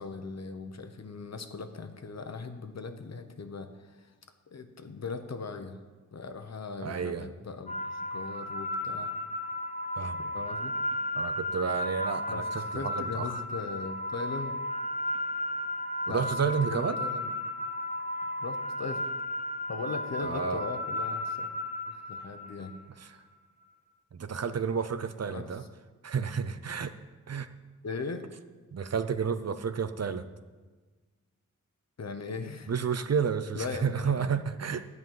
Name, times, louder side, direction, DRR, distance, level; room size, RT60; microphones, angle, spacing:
voice 1, 0.0-4.1 4.5-5.8 6.1-9.1 10.3-10.7 12.3-14.5 16.1-17.3 18.4-19.1 19.7-21.5 21.9-22.7 25.3-25.5 27.8-28.2 32.0-32.7 33.5-34.4, left 4 dB, 55° left, 7 dB, 1.1 m, -39 dB
voice 2, 6.8-7.3 10.0-10.3 11.2-13.4 16.1-17.0 20.2-20.6 23.0-23.1 24.1-25.6 26.0-26.9 27.3-27.5 28.7-30.3 32.7-34.9, right 6 dB, 55° right, 11 dB, 0.7 m, -31 dB
sound 1, 7.7-22.8, left 1 dB, 25° left, 0.8 m, -34 dB
13.0 x 5.5 x 9.3 m, 1.3 s
wide cardioid pair, 125°, 31 cm